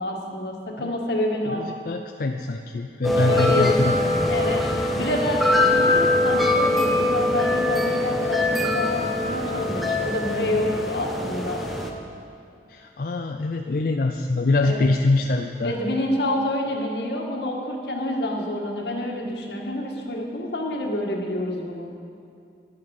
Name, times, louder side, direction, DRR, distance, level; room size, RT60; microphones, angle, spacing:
voice 1, 0.0-1.7 3.2-3.8 4.1-4.7 5.0-11.7 14.6-14.9 15.6-21.9, left 1 dB, 75° left, 1 dB, 1.6 m, -28 dB
voice 2, 1.5-4.3 12.7-15.8, left 3 dB, 55° left, 4 dB, 0.4 m, -24 dB
sound 1, 3.0-11.9, left 1 dB, ahead, 0.8 m, -23 dB
11.5 x 8.7 x 6.4 m, 2.5 s
head